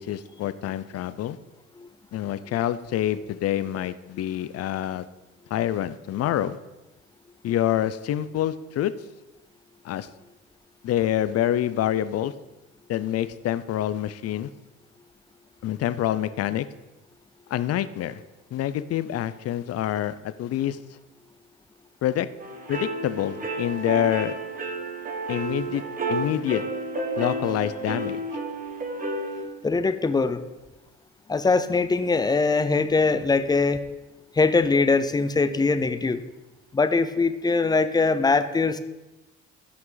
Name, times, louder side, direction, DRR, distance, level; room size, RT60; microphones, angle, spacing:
voice 1, 0.0-1.4 2.1-5.1 5.5-6.6 7.4-8.9 9.8-10.1 10.8-12.3 12.9-14.5 15.6-16.7 17.5-18.2 18.5-20.8 22.0-22.3 22.7-24.4 25.3-25.8 26.1-26.6 27.2-28.2, left 12 dB, 55° left, 14 dB, 0.6 m, -26 dB
sound 1, 22.4-29.5, right 2 dB, 30° right, 1.7 m, -31 dB
voice 2, 29.6-30.4 31.3-33.8 34.4-36.2 36.7-38.8, left 4 dB, 15° left, 11 dB, 0.6 m, -22 dB
16.0 x 6.1 x 3.9 m, 1.0 s
cardioid pair, 115°, 29 cm